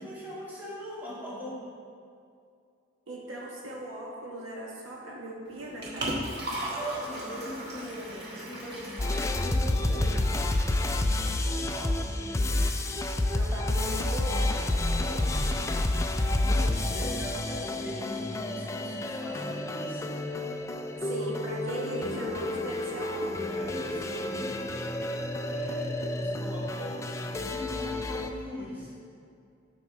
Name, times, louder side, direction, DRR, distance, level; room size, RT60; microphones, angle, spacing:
voice 1, 0.0-1.6 6.7-12.6 14.5-15.9 16.4-20.1 23.5-24.7 25.4-29.1, equal, 10° right, -7 dB, 1.8 m, -41 dB
voice 2, 3.1-6.5 13.3-14.7 16.9-17.1 21.1-23.5, right 1 dB, 85° right, -3 dB, 1.6 m, -38 dB
Liquid, 5.5-10.5, right 1 dB, 55° right, 1.5 m, -37 dB
sound 1, 9.0-28.3, left 2 dB, 15° left, 0.3 m, -30 dB
9.4 x 6.1 x 4.3 m, 2.4 s
head